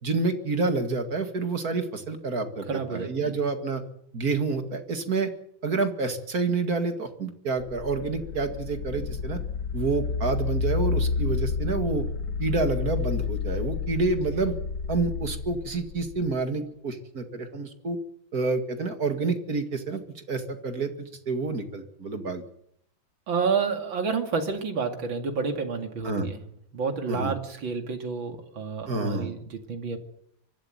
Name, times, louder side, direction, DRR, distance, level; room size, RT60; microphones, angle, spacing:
voice 1, 0.0-3.8 4.1-5.3 5.6-9.4 9.7-12.0 12.4-14.5 14.9-18.0 18.3-22.4 26.0-26.3 27.1-27.3 28.9-29.4, right 3 dB, 50° right, 7 dB, 2.5 m, -28 dB
voice 2, 2.7-3.4 23.3-26.4 26.7-30.0, right 5 dB, 85° right, 6 dB, 3.1 m, -29 dB
sound 1, 7.6-16.4, left 5 dB, 85° left, 2.3 m, -30 dB
24.5 x 12.5 x 9.3 m, 0.72 s
omnidirectional pair, 2.1 m